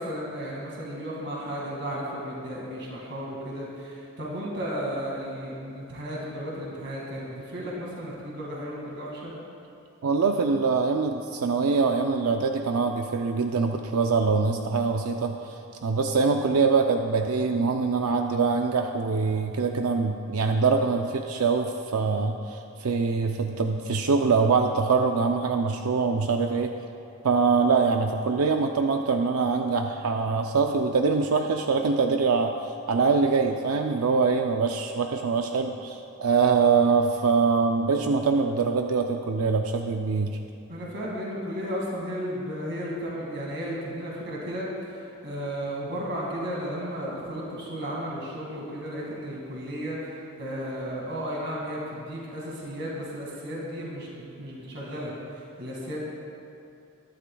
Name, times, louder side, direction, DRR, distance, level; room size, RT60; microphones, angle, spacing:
voice 1, 0.0-9.3 40.7-56.0, equal, 50° right, -4 dB, 2.1 m, -34 dB
voice 2, 10.0-26.7 27.2-40.4, right 4 dB, 80° right, 4 dB, 0.5 m, -24 dB
20.0 x 11.5 x 2.3 m, 2.7 s
head